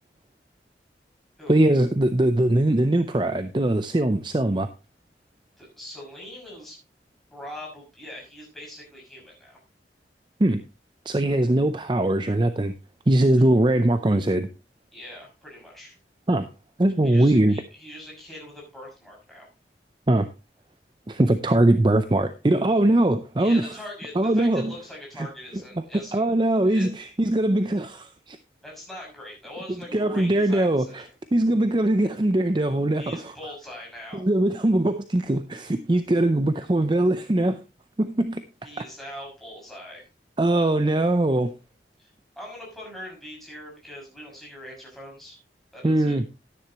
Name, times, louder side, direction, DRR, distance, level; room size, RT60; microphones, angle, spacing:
voice 1, 1.5-4.7 10.4-10.6 11.1-12.7 13.1-14.5 16.3-16.5 16.8-17.6 20.1-20.3 21.1-23.7 24.2-24.7 25.2-25.3 25.9-28.4 29.9-31.1 31.3-33.3 34.1-37.6 38.0-38.4 40.4-41.5 45.8-46.2, right 1 dB, 25° right, 10 dB, 0.5 m, -21 dB
voice 2, 5.6-6.8 7.3-9.6 14.9-16.0 17.0-19.5 23.4-26.2 26.7-26.9 28.6-31.1 33.0-34.2 38.6-40.1 42.0-42.1 42.4-45.4 45.7-46.2, left 1 dB, ahead, -4 dB, 6.3 m, -42 dB
12.5 x 10.0 x 3.0 m, 0.28 s
head